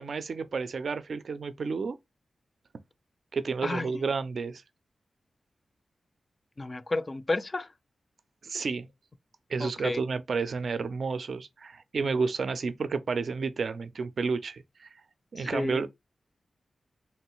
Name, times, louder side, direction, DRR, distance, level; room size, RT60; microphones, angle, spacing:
voice 1, 0.0-2.0 3.3-4.6 8.4-8.9 9.5-14.9 15.3-15.9, right 4 dB, 70° right, 0.3 m, -31 dB
voice 2, 3.6-4.1 6.6-7.7 9.6-10.0 15.4-15.8, left 2 dB, 35° left, 0.4 m, -32 dB
3.0 x 2.3 x 2.9 m
cardioid pair, 40°, 0 cm